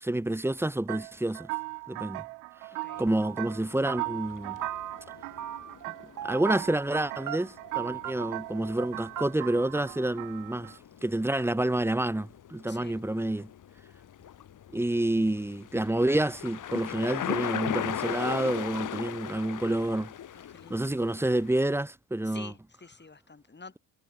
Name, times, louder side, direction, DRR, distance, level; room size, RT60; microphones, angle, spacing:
voice 1, 0.0-1.5 1.9-2.2 3.0-4.6 6.2-13.5 14.7-20.1 20.7-22.5, right 1 dB, 5° right, 0.8 m, -28 dB
sound 1, 0.9-10.8, right 29 dB, 90° right, 0.9 m, -39 dB
sound 2, 2.9-3.3 3.5-4.3 4.6-5.1 5.4-5.9 6.2-6.7 7.3-7.7 8.0-8.1 8.4-8.5 8.8-8.9 9.2-9.3, right 11 dB, 50° right, 1.3 m, -38 dB
sound 3, 3.0-21.6, left 10 dB, 50° left, 1.7 m, -40 dB
voice 2, 12.7-13.0 20.3-20.9 22.2-23.8, left 4 dB, 25° left, 7.0 m, -48 dB
supercardioid pair, 65°, 41 cm